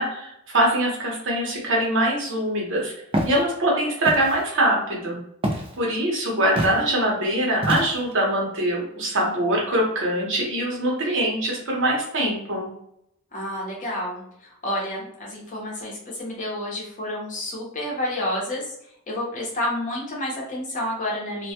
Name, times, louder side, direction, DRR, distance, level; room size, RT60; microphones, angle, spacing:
voice 1, 0.0-2.9 3.2-5.2 5.8-12.7, right 1 dB, 60° right, -2 dB, 0.8 m, -23 dB
Walk footsteps, 3.1-3.4 4.0-4.4 5.4-5.8 6.6-6.8 7.6-8.1, right 1 dB, 25° right, 0.3 m, -26 dB
voice 2, 13.3-18.7 19.1-21.5, left 1 dB, 35° left, -3 dB, 0.7 m, -29 dB
2.1 x 2.1 x 2.8 m, 0.76 s
head